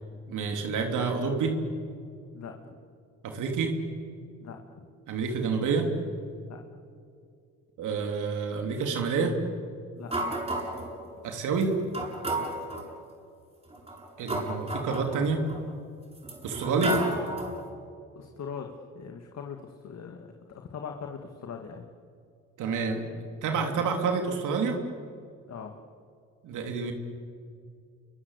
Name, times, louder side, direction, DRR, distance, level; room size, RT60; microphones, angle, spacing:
voice 1, 0.3-1.6 3.2-3.7 5.1-5.9 7.8-9.3 11.2-11.7 14.2-15.4 16.4-17.0 22.6-23.0 23.4-24.8 26.4-26.9, right 5 dB, 80° right, 3 dB, 3.4 m, -28 dB
sound 1, 10.1-10.9 11.6-11.7 11.9-12.9 13.7-15.6 16.2-17.6, right 2 dB, 20° right, 7.8 m, -32 dB
voice 2, 18.2-21.9 25.5-25.8, left 6 dB, 60° left, 3 dB, 2.2 m, -41 dB
29.0 x 23.5 x 8.3 m, 2.3 s
cardioid pair, 90°, 30 cm